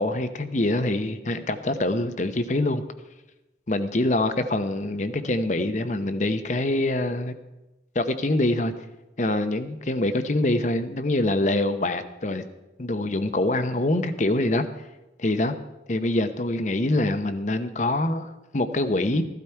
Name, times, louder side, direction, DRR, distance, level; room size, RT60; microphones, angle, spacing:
voice 1, 0.0-2.8 3.7-7.3 7.9-8.7 9.2-12.4 12.8-14.6 15.2-15.5 15.9-19.2, left 1 dB, 40° left, 10 dB, 0.8 m, -25 dB
15.0 x 12.0 x 4.5 m, 1.0 s
head